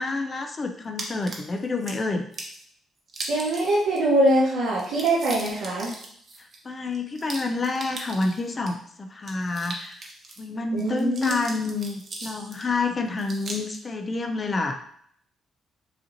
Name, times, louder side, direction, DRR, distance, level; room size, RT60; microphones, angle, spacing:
voice 1, 0.0-2.3 6.4-10.0 10.4-14.8, left 3 dB, 35° left, 5 dB, 0.4 m, -28 dB
sound 1, 1.0-1.9 2.3-2.6 3.1-4.0 4.3-4.4 4.7-8.7 9.2-10.4 10.8-12.7 13.2-13.8, right 2 dB, 45° right, 0.9 m, -38 dB
voice 2, 3.3-5.9 10.7-11.4, right 1 dB, 80° right, -10 dB, 1.3 m, -23 dB
4.8 x 2.6 x 2.9 m, 0.66 s
cardioid pair, 90°, 0 cm